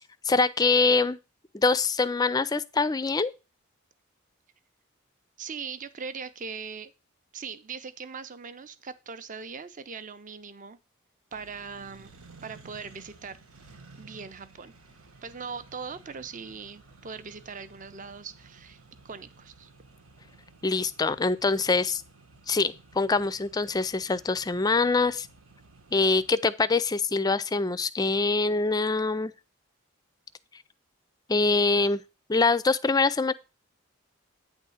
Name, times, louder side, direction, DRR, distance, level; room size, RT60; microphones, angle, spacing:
voice 1, 0.2-1.2 1.5-3.3 20.6-22.0 22.5-25.3 25.9-29.3 31.3-32.0 32.3-33.3, left 3 dB, 20° left, 0.4 m, -24 dB
voice 2, 5.4-6.9 7.3-10.8 11.3-12.1 12.4-13.4 14.0-14.7 15.2-19.7, right 5 dB, 40° right, 0.6 m, -40 dB
Accelerating revving vroom, 11.3-26.3, right 3 dB, 90° right, 1.3 m, -54 dB
9.0 x 3.6 x 7.0 m
head